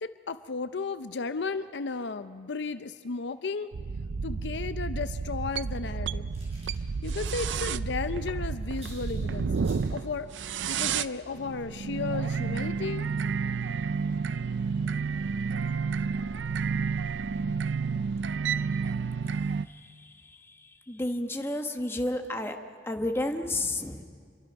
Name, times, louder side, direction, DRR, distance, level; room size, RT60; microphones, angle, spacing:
voice 1, 0.0-3.7 4.2-6.3 7.0-9.5 9.9-10.3 10.7-13.1, left 4 dB, 70° left, 11 dB, 0.6 m, -34 dB
sound 1, 3.7-19.7, right 5 dB, 85° right, 0.5 m, -31 dB
sound 2, 5.6-7.5 7.9-8.0 8.3-8.4 8.6-9.9 10.7-10.9 11.2-11.4 11.6-11.7, right 1 dB, 35° right, 6.2 m, -55 dB
voice 2, 20.9-22.6 22.8-24.1, left 1 dB, 15° left, 4 dB, 1.2 m, -30 dB
27.5 x 23.5 x 5.3 m, 2.1 s
head